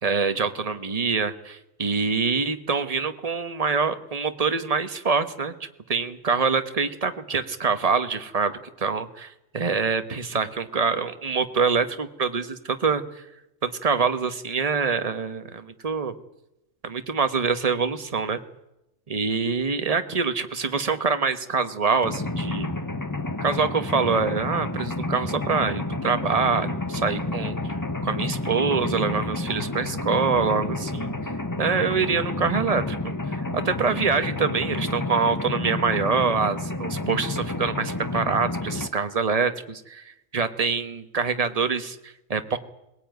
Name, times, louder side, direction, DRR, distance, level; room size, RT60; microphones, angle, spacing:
voice 1, 0.0-5.5 5.9-13.2 13.6-16.1 16.8-18.4 19.1-22.7 23.4-27.8 28.0-31.1 31.6-42.6, right 5 dB, 30° right, 10 dB, 1.2 m, -25 dB
Mechanisms, 22.0-38.9, left 2 dB, 15° left, 0.9 m, -30 dB
21.0 x 17.0 x 9.3 m, 0.89 s
omnidirectional pair, 1.4 m